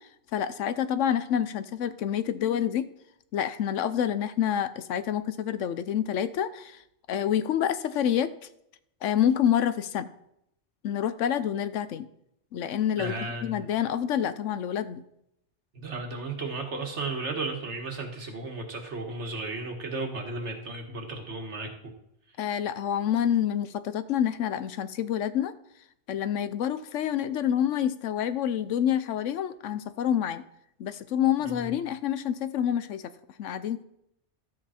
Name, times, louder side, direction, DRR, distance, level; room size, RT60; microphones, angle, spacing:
voice 1, 0.3-2.9 3.3-6.8 7.1-8.3 9.0-10.1 10.8-12.1 12.5-13.1 13.4-15.0 22.4-25.5 26.1-30.4 30.8-33.0 33.4-33.8, left 9 dB, 85° left, 13 dB, 1.0 m, -27 dB
voice 2, 13.0-13.7 15.7-21.9 31.5-31.7, right 3 dB, 70° right, 3 dB, 1.9 m, -34 dB
12.5 x 7.8 x 4.3 m, 0.77 s
omnidirectional pair, 1.2 m